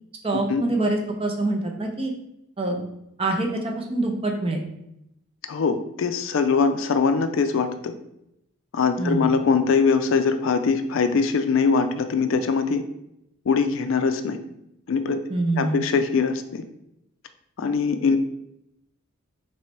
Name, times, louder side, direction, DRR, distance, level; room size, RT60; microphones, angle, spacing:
voice 1, 0.2-2.1 2.6-2.8 3.2-4.6 9.0-9.3 15.3-15.9, right 2 dB, 25° right, 2 dB, 0.5 m, -25 dB
voice 2, 5.5-7.9 8.7-12.8 13.5-14.4 14.9-15.2 15.6-16.6 17.6-18.2, left 5 dB, 65° left, 8 dB, 0.4 m, -22 dB
3.2 x 3.0 x 4.3 m, 0.80 s
head